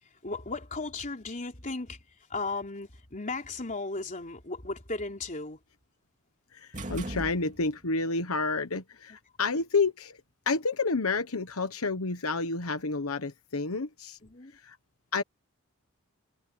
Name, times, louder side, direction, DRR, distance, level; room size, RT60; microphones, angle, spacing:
voice 1, 0.0-5.6 14.2-14.5, left 3 dB, 40° left, 3.8 m, -36 dB
voice 2, 6.5-10.2 10.5-14.2 14.6-14.8 15.1-15.2, left 3 dB, 85° left, 1.2 m, -30 dB
sound 1, 6.7-8.0, right 1 dB, 35° right, 2.5 m, -39 dB
head